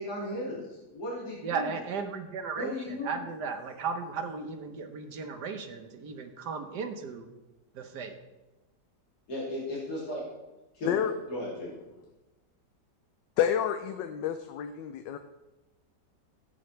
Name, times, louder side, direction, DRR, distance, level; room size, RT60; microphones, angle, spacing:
voice 1, 0.0-1.7 2.6-3.1 9.3-10.2 10.7-11.7, left 1 dB, 60° left, -7 dB, 3.4 m, -36 dB
voice 2, 1.4-7.3 7.7-8.2, right 5 dB, 70° right, 6 dB, 1.5 m, -36 dB
voice 3, 13.4-15.2, left 9 dB, 85° left, 8 dB, 1.3 m, -29 dB
15.5 x 9.2 x 3.2 m, 1.1 s
omnidirectional pair, 1.9 m